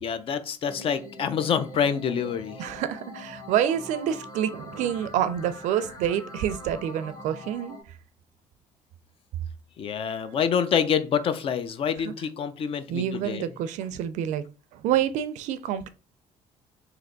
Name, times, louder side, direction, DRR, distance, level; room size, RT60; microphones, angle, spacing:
voice 1, 0.0-2.6 9.8-13.5, left 7 dB, 50° left, 0.5 m, -27 dB
sound 1, 0.7-7.8, left 1 dB, 35° left, 1.1 m, -43 dB
voice 2, 2.6-7.8 12.0-12.1 12.9-14.4 14.7-15.9, right 10 dB, 80° right, 0.4 m, -27 dB
3.3 x 2.9 x 3.8 m
cardioid pair, 125°, 12 cm